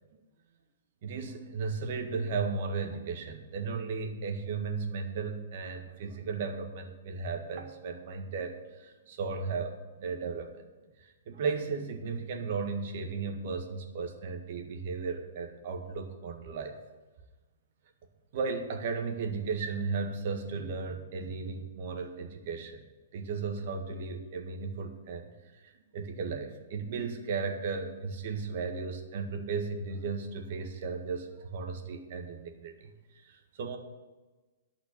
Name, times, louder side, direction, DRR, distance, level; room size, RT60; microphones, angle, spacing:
voice 1, 1.0-10.6 11.0-16.8 18.3-22.8 23.1-33.8, right 4 dB, 50° right, 4 dB, 1.8 m, -35 dB
11.5 x 5.9 x 8.6 m, 1.2 s
hypercardioid pair, 160°, 0 cm